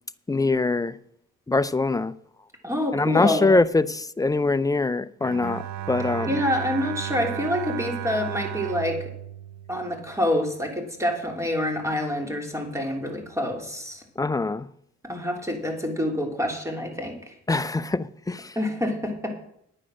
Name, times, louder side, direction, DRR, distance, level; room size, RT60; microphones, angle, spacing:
voice 1, 0.3-1.0 1.5-2.1 2.9-6.3 14.2-14.7 17.5-18.6, left 3 dB, 10° left, 0.6 m, -23 dB
voice 2, 2.6-3.5 6.3-9.0 9.7-14.0 15.0-17.3 18.5-19.3, left 1 dB, 10° right, 3.3 m, -27 dB
Bowed string instrument, 5.2-10.5, right 11 dB, 70° right, 0.7 m, -34 dB
9.9 x 9.8 x 6.3 m
cardioid pair, 90°, 30 cm